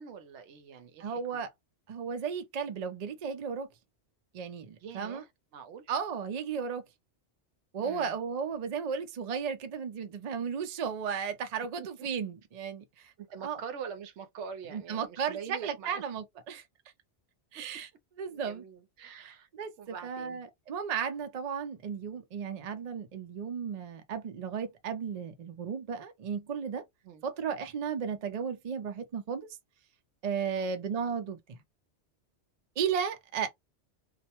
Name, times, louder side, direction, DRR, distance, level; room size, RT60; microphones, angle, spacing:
voice 1, 0.0-1.5 4.8-5.9 7.8-8.2 11.8-12.1 13.2-16.0 17.5-17.6 18.3-19.5 19.8-20.4 27.0-27.3 30.5-30.8, right 7 dB, 75° right, 0.9 m, -45 dB
voice 2, 1.0-1.5 1.9-3.7 4.3-5.2 5.9-6.8 7.7-13.1 13.4-13.6 14.7-16.6 17.5-17.9 18.2-18.6 19.2-26.8 27.2-29.5 30.2-31.6 32.8-33.5, right 6 dB, 55° right, 0.5 m, -34 dB
2.4 x 2.1 x 2.8 m
omnidirectional pair, 1.2 m